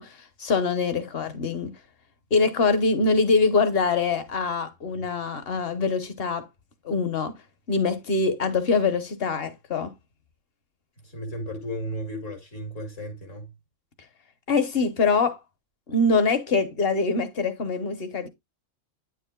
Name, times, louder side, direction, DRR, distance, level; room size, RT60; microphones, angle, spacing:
voice 1, 0.0-1.7 2.3-6.5 6.8-7.4 7.7-9.9 14.5-15.4 15.9-18.3, left 4 dB, 50° left, 1.2 m, -24 dB
voice 2, 11.1-13.5, equal, 75° left, 2.4 m, -34 dB
9.6 x 6.6 x 2.3 m
omnidirectional pair, 1.3 m